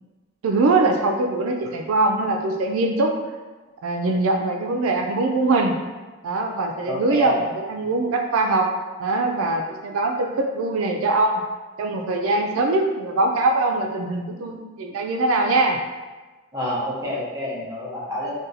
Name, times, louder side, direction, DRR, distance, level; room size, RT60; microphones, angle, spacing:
voice 1, 0.4-3.1 3.8-5.8 6.2-8.7 9.0-11.4 11.8-15.8, right 2 dB, 90° right, 2 dB, 0.4 m, -22 dB
voice 2, 6.8-7.4 7.8-7.9 16.5-18.3, left 1 dB, 15° right, -7 dB, 0.8 m, -28 dB
2.6 x 2.2 x 4.0 m, 1.2 s
head